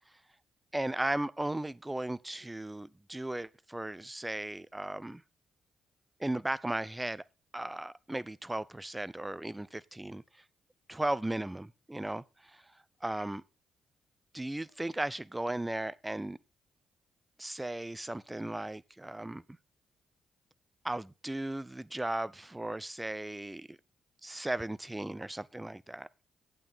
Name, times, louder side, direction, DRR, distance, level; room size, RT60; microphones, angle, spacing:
voice 1, 0.7-5.2 6.2-7.2 7.5-10.2 10.9-12.6 13.0-13.4 14.3-16.4 17.4-19.4 20.8-23.8 24.2-26.1, right 1 dB, 15° right, 0.6 m, -36 dB
9.3 x 8.7 x 3.9 m
hypercardioid pair, 40°, 0 cm